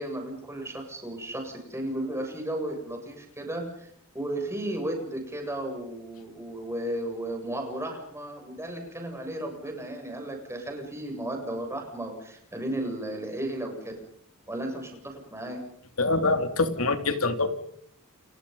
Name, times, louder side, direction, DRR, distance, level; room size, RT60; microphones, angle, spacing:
voice 1, 0.0-14.0 14.5-15.6, right 1 dB, 10° right, 3 dB, 7.4 m, -34 dB
voice 2, 16.0-17.5, left 3 dB, 70° left, 8 dB, 3.1 m, -24 dB
30.0 x 28.5 x 5.5 m, 0.66 s
head